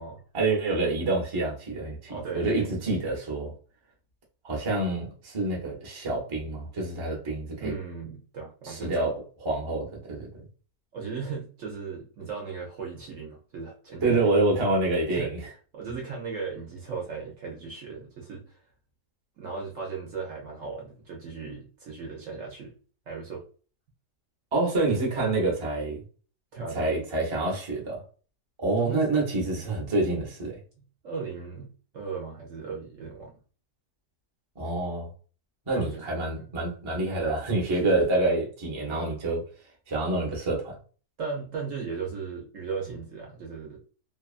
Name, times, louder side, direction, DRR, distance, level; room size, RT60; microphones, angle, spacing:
voice 1, 0.3-3.5 4.4-7.7 8.6-9.1 9.4-10.4 14.0-15.5 24.5-26.0 26.7-28.0 28.6-30.6 34.6-35.1 35.7-39.4 39.9-40.7, right 2 dB, 30° right, 0.5 m, -27 dB
voice 2, 2.1-2.8 7.6-9.1 10.9-14.2 15.1-15.3 15.7-18.6 19.4-22.7 23.1-23.4 26.5-26.9 28.8-29.1 29.4-29.7 30.8-33.4 35.7-36.5 37.7-37.8 41.2-43.8, right 5 dB, 65° right, 0.8 m, -37 dB
2.8 x 2.3 x 2.4 m
omnidirectional pair, 1.8 m